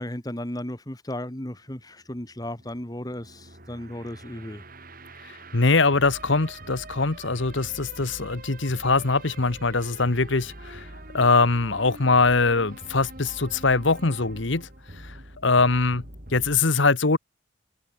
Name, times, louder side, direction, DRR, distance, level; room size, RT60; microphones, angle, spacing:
voice 1, 0.0-4.6, left 1 dB, 20° left, 1.7 m, -35 dB
sound 1, 1.8-16.6, right 1 dB, 45° right, 6.0 m, -44 dB
voice 2, 5.5-10.9 11.1-14.7 15.0-15.1 15.4-16.0 16.3-17.2, left 3 dB, 65° left, 1.3 m, -22 dB
head